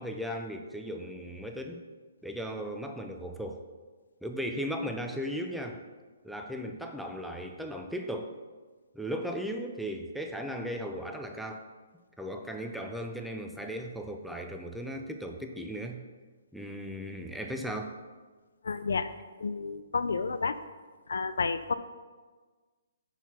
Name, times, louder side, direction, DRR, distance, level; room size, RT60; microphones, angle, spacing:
voice 1, 0.0-1.8 2.2-3.6 4.2-5.8 6.2-8.3 8.9-11.6 12.2-16.0 16.5-18.0, equal, ahead, 3 dB, 0.4 m, -36 dB
voice 2, 18.6-19.1 19.4-20.5 21.1-21.7, left 4 dB, 85° left, 12 dB, 0.4 m, -30 dB
5.6 x 4.6 x 5.7 m, 1.4 s
hypercardioid pair, 160°, 0 cm